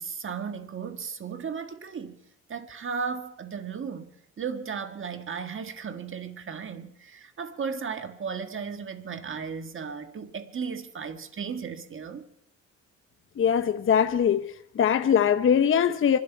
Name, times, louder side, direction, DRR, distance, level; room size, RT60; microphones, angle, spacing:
voice 1, 0.0-2.2 2.5-4.1 4.4-12.2, right 6 dB, 40° right, 1.5 m, -35 dB
voice 2, 13.4-16.2, left 8 dB, 45° left, 0.8 m, -22 dB
25.0 x 12.0 x 4.6 m
cardioid pair, 90°, 30 cm